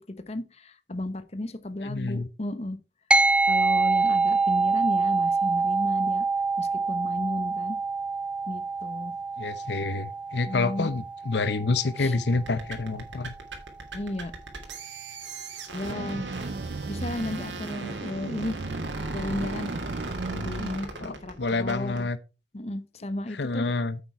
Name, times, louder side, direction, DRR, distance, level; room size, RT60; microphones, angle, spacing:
voice 1, 0.3-2.8 3.5-6.3 6.6-7.8 8.5-9.1 10.5-10.9 12.0-12.1 13.9-14.3 15.7-16.3 16.9-18.6 19.1-19.7 20.3-22.1 22.5-23.7, left 1 dB, 35° left, 0.9 m, -33 dB
voice 2, 1.8-2.3 9.4-13.3 21.0-22.2 23.3-24.0, left 3 dB, 70° left, 0.8 m, -28 dB
sound 1, 3.1-12.8, right 3 dB, 5° right, 0.4 m, -26 dB
sound 2, 12.3-22.0, right 2 dB, 85° right, 3.1 m, -39 dB
sound 3, 15.8-20.8, right 3 dB, 50° right, 0.6 m, -35 dB
8.8 x 8.4 x 4.6 m
head